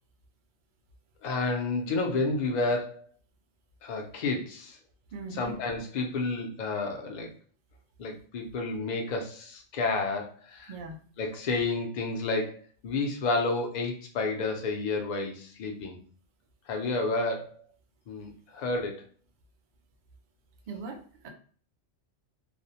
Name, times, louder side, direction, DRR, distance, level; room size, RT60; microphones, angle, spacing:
voice 1, 1.2-3.0 3.8-4.8 5.3-7.3 8.0-10.7 11.2-16.0 16.7-17.5 18.1-19.0, left 3 dB, 55° left, 2 dB, 0.5 m, -30 dB
voice 2, 5.1-5.6 10.7-11.0 20.7-21.3, right 4 dB, 60° right, 4 dB, 0.5 m, -40 dB
2.5 x 2.0 x 2.7 m, 0.43 s
omnidirectional pair, 1.2 m